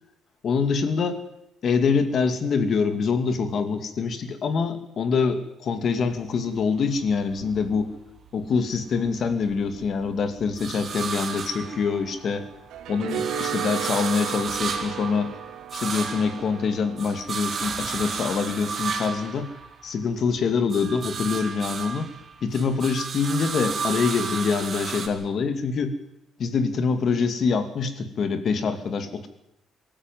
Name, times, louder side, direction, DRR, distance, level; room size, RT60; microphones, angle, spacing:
voice 1, 0.4-1.2 1.6-7.9 8.3-12.5 12.9-15.3 15.7-19.5 19.8-22.1 22.4-25.9 26.4-29.3, left 5 dB, 45° left, 9 dB, 2.5 m, -25 dB
sound 1, 6.0-8.4 8.7-12.4 12.8-20.2 20.5-25.1, right 5 dB, 35° right, 3.1 m, -33 dB
sound 2, 11.6-17.2, right 9 dB, 85° right, 3.4 m, -35 dB
23.5 x 15.0 x 9.4 m, 0.81 s
cardioid pair, 165°, 0 cm